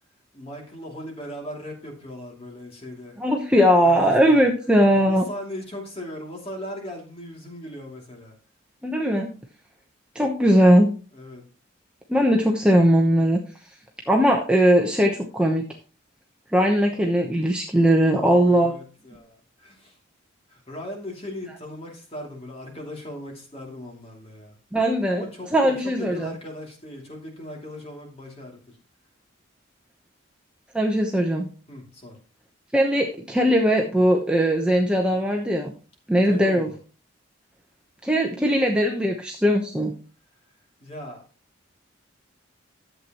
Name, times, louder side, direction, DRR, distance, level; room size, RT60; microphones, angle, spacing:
voice 1, 0.3-3.2 3.8-4.4 5.0-8.3 11.1-11.4 18.2-20.0 20.5-24.6 25.1-28.6 31.7-32.2 36.1-36.7 40.8-41.2, left 1 dB, 30° left, 0 dB, 2.7 m, -38 dB
voice 2, 3.2-5.3 8.8-9.3 10.1-10.9 12.1-13.4 14.1-15.6 16.5-18.7 24.7-25.2 25.5-26.3 30.7-31.5 32.7-35.7 36.1-36.7 38.0-39.9, equal, 5° right, 0 dB, 0.9 m, -19 dB
12.0 x 7.9 x 3.0 m, 0.37 s
head